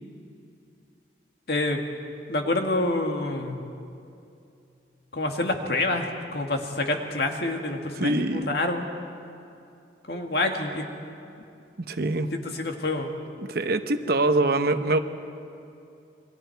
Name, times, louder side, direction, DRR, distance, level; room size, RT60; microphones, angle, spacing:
voice 1, 1.5-1.8 2.3-3.6 5.1-6.1 6.3-8.9 10.1-10.8 12.3-13.2, left 2 dB, 60° left, 3 dB, 1.9 m, -27 dB
voice 2, 8.0-8.5 11.9-12.3 13.4-15.0, right 2 dB, 60° right, 9 dB, 0.9 m, -24 dB
29.0 x 23.0 x 4.6 m, 2.6 s
head